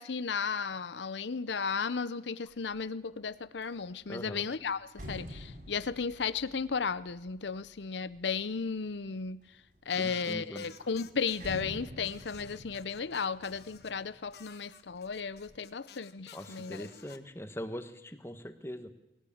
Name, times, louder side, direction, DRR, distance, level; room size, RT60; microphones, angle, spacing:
voice 1, 0.0-9.4 9.9-16.9, left 5 dB, 75° left, 0.7 m, -35 dB
sound 1, 2.5-2.9 3.3-8.6 9.2-9.9 10.2-10.3 10.6-14.5 14.9-15.6, equal, 50° right, 6.3 m, -48 dB
voice 2, 4.1-4.4 9.9-10.7 16.3-18.9, equal, 15° left, 1.3 m, -41 dB
sound 2, 9.9-11.6 12.0-13.9 14.3-17.2, left 8 dB, 60° left, 1.2 m, -54 dB
21.0 x 17.5 x 8.7 m
head